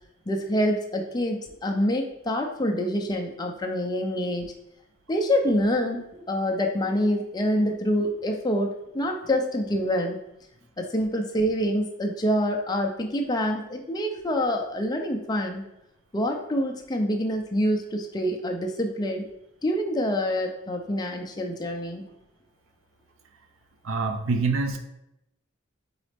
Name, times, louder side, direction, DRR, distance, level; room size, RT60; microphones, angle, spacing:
voice 1, 0.3-4.5 5.1-10.2 10.8-15.6 16.1-19.2 19.6-22.0, equal, 20° left, 2 dB, 0.5 m, -26 dB
voice 2, 23.8-24.8, right 4 dB, 75° right, 6 dB, 0.6 m, -25 dB
4.1 x 3.9 x 3.3 m, 0.83 s
head